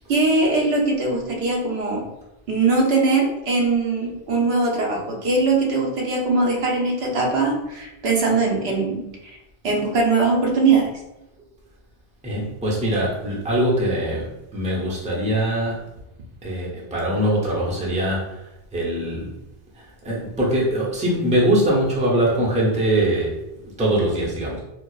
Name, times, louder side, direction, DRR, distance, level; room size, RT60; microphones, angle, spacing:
voice 1, 0.1-2.0 2.5-9.1 9.6-10.9, right 3 dB, 80° right, 0 dB, 1.0 m, -21 dB
voice 2, 12.2-15.9 16.4-19.3 19.7-24.6, right 1 dB, 10° right, -4 dB, 0.6 m, -22 dB
4.5 x 2.0 x 2.3 m, 0.88 s
omnidirectional pair, 1.1 m